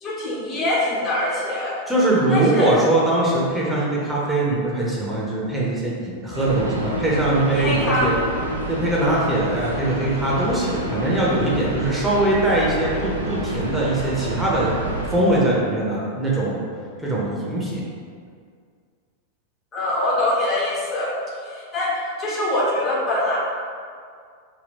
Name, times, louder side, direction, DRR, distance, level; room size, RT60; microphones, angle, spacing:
voice 1, 0.0-1.8 2.3-2.7 7.6-8.1 19.7-21.1 21.5-21.9 22.2-23.4, left 1 dB, 30° left, -5 dB, 0.6 m, -23 dB
voice 2, 1.9-8.1 8.7-14.7 15.1-16.7 17.0-17.8, right 1 dB, 5° right, -6 dB, 0.7 m, -21 dB
sound 1, 6.3-15.2, right 1 dB, 80° right, 0.4 m, -29 dB
2.8 x 2.2 x 3.5 m, 2.1 s
figure-of-eight pair, 90°, 0 cm